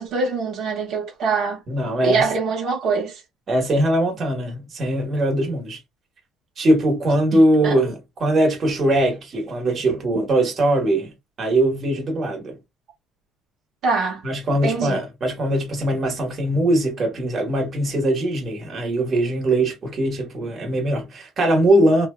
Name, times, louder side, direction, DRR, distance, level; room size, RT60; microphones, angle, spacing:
voice 1, 0.0-1.6 2.0-3.2 7.3-7.8 13.8-14.2 14.6-15.0, right 4 dB, 65° right, 0.8 m, -24 dB
voice 2, 1.7-2.3 3.5-5.8 6.6-11.1 11.4-12.6 14.2-22.1, right 1 dB, 35° right, 1.0 m, -21 dB
2.8 x 2.1 x 2.3 m
cardioid pair, 125°, 0 cm